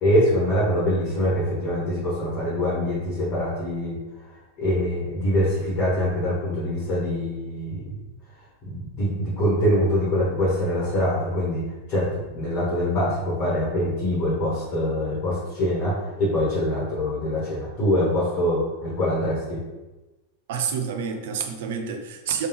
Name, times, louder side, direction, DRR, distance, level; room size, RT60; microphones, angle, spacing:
voice 1, 0.0-4.0 4.6-7.9 8.6-11.6 11.9-19.6, equal, 35° left, -7 dB, 1.3 m, -24 dB
voice 2, 20.5-22.5, right 7 dB, 55° right, 5 dB, 0.5 m, -28 dB
3.4 x 3.2 x 2.9 m, 1.1 s
figure-of-eight pair, 90°, 0 cm